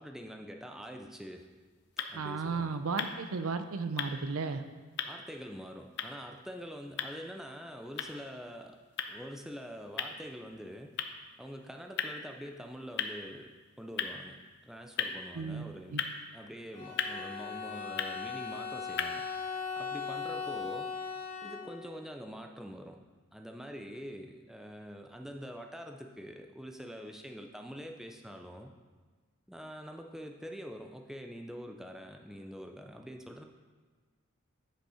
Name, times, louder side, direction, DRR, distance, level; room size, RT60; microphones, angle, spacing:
voice 1, 0.0-1.5 2.0-2.8 5.1-8.8 9.1-10.9 11.4-13.5 13.8-16.0 16.3-19.2 19.8-20.9 21.4-23.0 23.3-28.7 29.5-33.4, equal, ahead, 3 dB, 0.4 m, -45 dB
sound 1, 1.3-19.4, left 7 dB, 50° left, 0.5 m, -41 dB
voice 2, 2.1-4.6 15.3-15.6 15.9-16.0, right 4 dB, 75° right, 9 dB, 0.5 m, -34 dB
Bowed string instrument, 16.7-22.0, left 5 dB, 35° left, 1.3 m, -39 dB
9.0 x 5.3 x 4.9 m, 1.4 s
head